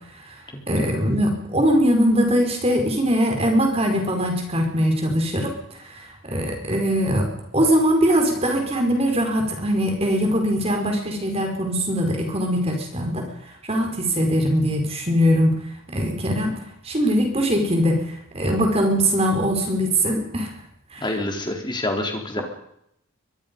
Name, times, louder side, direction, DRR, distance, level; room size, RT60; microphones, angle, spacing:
voice 1, 0.7-5.5 5.8-13.2 13.6-15.5 15.9-18.0 18.3-20.5 20.9-21.0, equal, 30° right, 3 dB, 4.8 m, -21 dB
voice 2, 21.0-22.4, left 1 dB, 20° left, 3 dB, 3.9 m, -27 dB
23.5 x 22.0 x 5.4 m, 0.74 s
head